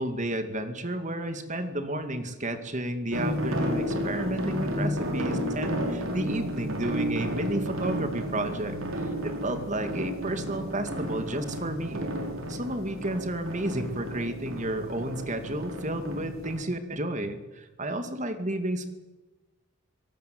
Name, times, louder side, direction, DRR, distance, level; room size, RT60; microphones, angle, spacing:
voice 1, 0.0-12.1 12.5-18.9, right 1 dB, 35° right, 8 dB, 2.4 m, -32 dB
sound 1, 3.1-16.6, equal, 65° right, 5.0 m, -32 dB
25.5 x 18.0 x 8.0 m, 1.1 s
head